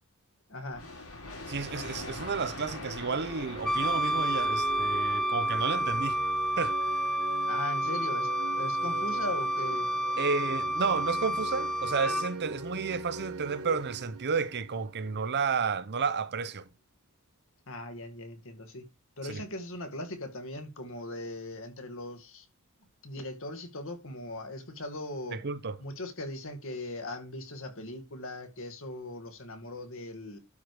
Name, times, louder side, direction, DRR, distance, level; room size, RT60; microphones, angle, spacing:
voice 1, 0.5-0.8 7.5-9.9 17.7-18.9 19.2-22.5 23.0-25.4 25.8-30.4, left 2 dB, 65° left, 2.2 m, -39 dB
sound 1, 0.7-6.3, left 2 dB, 90° left, 5.4 m, -43 dB
voice 2, 1.5-6.2 6.6-6.8 10.2-16.7 19.3-19.4 25.3-25.8, right 5 dB, 50° right, 0.7 m, -31 dB
sound 2, 2.9-15.5, right 3 dB, 75° right, 1.0 m, -42 dB
Wind instrument woodwind instrument, 3.6-12.3, equal, 5° left, 0.7 m, -30 dB
12.0 x 4.8 x 4.9 m
head